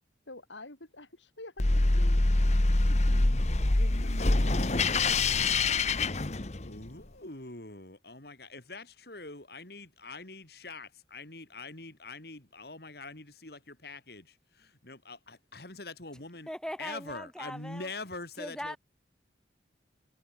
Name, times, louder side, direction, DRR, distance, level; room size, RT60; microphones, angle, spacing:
voice 1, 0.3-2.2 2.8-3.4 3.8-6.0, left 2 dB, 85° left, 7.5 m, -47 dB
sound 1, 1.6-6.9, left 2 dB, 40° left, 1.2 m, -25 dB
voice 2, 6.6-16.5 16.8-18.8, left 3 dB, 55° left, 3.1 m, -44 dB
voice 3, 16.5-17.9 18.4-18.8, equal, 5° left, 4.3 m, -39 dB
head